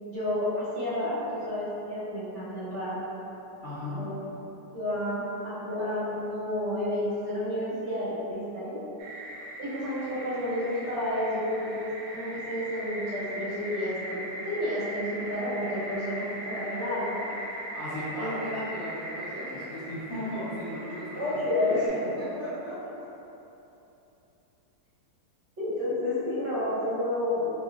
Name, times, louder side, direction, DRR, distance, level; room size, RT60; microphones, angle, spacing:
voice 1, 0.0-3.6 4.0-4.2 4.7-8.8 9.6-14.2 14.4-17.3 18.2-18.3 21.1-21.8 22.1-22.2 25.6-27.5, left 1 dB, 50° right, -11 dB, 0.9 m, -31 dB
voice 2, 3.6-4.0 17.7-22.7, equal, 50° left, -14 dB, 0.9 m, -36 dB
sound 1, 9.0-21.9, right 1 dB, 80° right, 1.2 m, -39 dB
4.5 x 2.4 x 2.4 m, 3.0 s
omnidirectional pair, 2.0 m